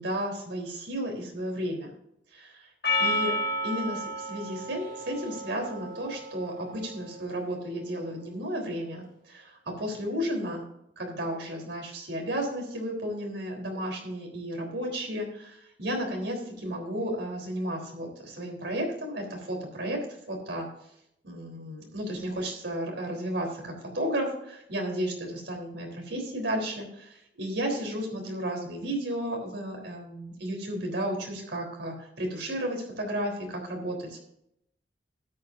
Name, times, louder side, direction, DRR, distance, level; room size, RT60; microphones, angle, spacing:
voice 1, 0.0-1.9 2.3-2.7 3.0-3.4 3.6-10.6 11.0-20.0 20.3-20.7 21.2-34.2, equal, 85° right, 2 dB, 3.8 m, -33 dB
Percussion, 2.8-7.4, left 1 dB, 65° left, 3.8 m, -32 dB
13.0 x 10.5 x 2.6 m, 0.77 s
head